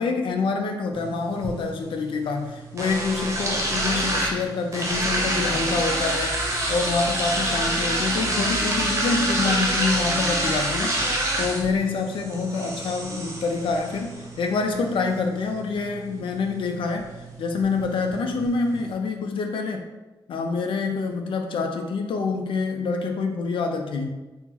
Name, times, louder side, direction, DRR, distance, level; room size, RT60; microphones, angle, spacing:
voice 1, 0.0-6.4 6.7-17.1 17.4-19.8 20.3-24.1, left 4 dB, 80° left, 4 dB, 0.4 m, -26 dB
sound 1, 0.9-18.9, right 1 dB, 35° right, 0.7 m, -28 dB
3.6 x 2.0 x 2.9 m, 1.1 s
wide cardioid pair, 105°, 9 cm